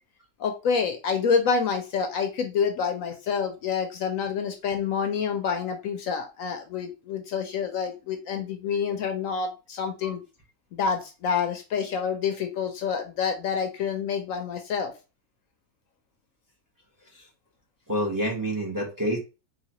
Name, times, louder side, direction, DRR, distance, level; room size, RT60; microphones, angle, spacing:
voice 1, 0.4-10.2 10.7-14.9, left 6 dB, 70° left, 5 dB, 0.9 m, -27 dB
voice 2, 17.9-19.2, equal, 15° right, -1 dB, 0.8 m, -28 dB
4.0 x 2.6 x 2.8 m, 0.29 s
omnidirectional pair, 1.6 m